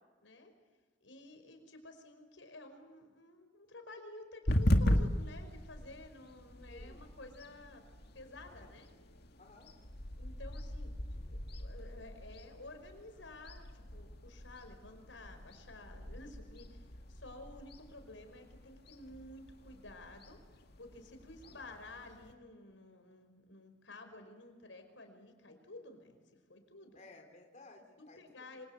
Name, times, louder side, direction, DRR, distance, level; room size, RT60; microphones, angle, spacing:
voice 1, 0.2-0.5 1.0-7.8 8.1-8.9 10.1-20.4 20.8-26.2 26.5-27.0 28.0-28.7, left 2 dB, 85° left, 6 dB, 5.3 m, -52 dB
sound 1, 4.5-22.3, left 1 dB, 60° left, 2.1 m, -38 dB
voice 2, 6.7-7.2 8.6-8.8 9.4-9.7 21.4-21.7 26.9-28.6, left 2 dB, 40° left, 2 dB, 3.7 m, -57 dB
26.5 x 26.5 x 8.1 m, 1.3 s
head